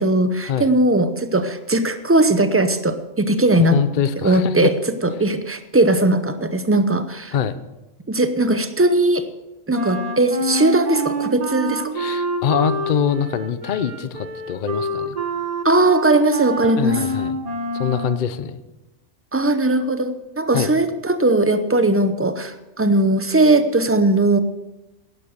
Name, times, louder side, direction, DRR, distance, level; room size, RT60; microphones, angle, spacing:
voice 1, 0.0-3.8 4.2-4.7 5.0-7.3 8.1-9.3 9.7-11.9 15.6-17.0 19.3-24.4, right 2 dB, 15° right, 10 dB, 0.5 m, -18 dB
voice 2, 3.7-4.7 7.3-7.6 12.0-15.2 16.6-17.4 17.7-18.6 20.5-20.7, left 7 dB, 45° left, 13 dB, 0.7 m, -24 dB
Wind instrument woodwind instrument, 9.7-18.3, right 1 dB, 30° right, 1.2 m, -27 dB
11.0 x 11.0 x 6.5 m, 1.0 s
omnidirectional pair, 1.3 m